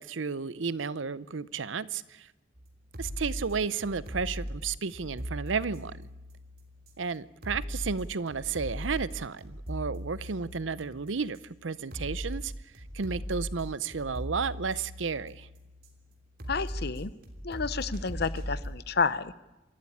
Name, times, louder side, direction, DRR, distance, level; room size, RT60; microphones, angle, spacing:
voice 1, 0.0-2.3 3.0-5.9 7.0-12.5 12.9-15.5, right 5 dB, 90° right, 18 dB, 0.7 m, -32 dB
sound 1, 2.6-18.7, equal, 55° right, 3.3 m, -39 dB
voice 2, 16.5-17.1 17.4-19.4, left 5 dB, 55° left, 16 dB, 0.8 m, -30 dB
26.5 x 13.5 x 10.0 m, 1.0 s
head